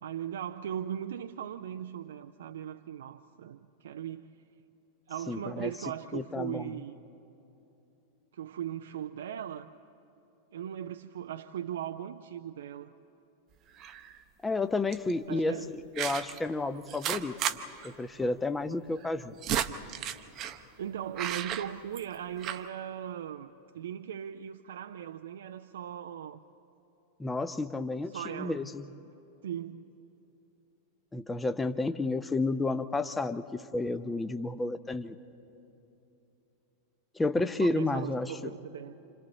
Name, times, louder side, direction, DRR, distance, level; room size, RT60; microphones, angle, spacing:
voice 1, 0.0-4.3 5.1-7.0 8.3-9.7 10.5-12.9 15.3-15.7 20.8-26.4 28.1-28.6 29.4-29.9 37.6-39.0, right 10 dB, 60° right, 0.5 m, -38 dB
voice 2, 5.3-5.7 6.1-6.7 14.4-17.4 17.8-19.3 27.2-28.9 31.1-35.2 37.1-38.5, left 2 dB, 10° left, 0.8 m, -31 dB
sound 1, 13.8-14.2 14.9-15.1 15.9-16.4 16.9-17.6 17.8-17.9 18.2-18.3 19.0-20.6 21.2-22.1 22.4-22.6, right 10 dB, 35° right, 0.9 m, -33 dB
29.5 x 27.0 x 4.0 m
figure-of-eight pair, 90°, 0 cm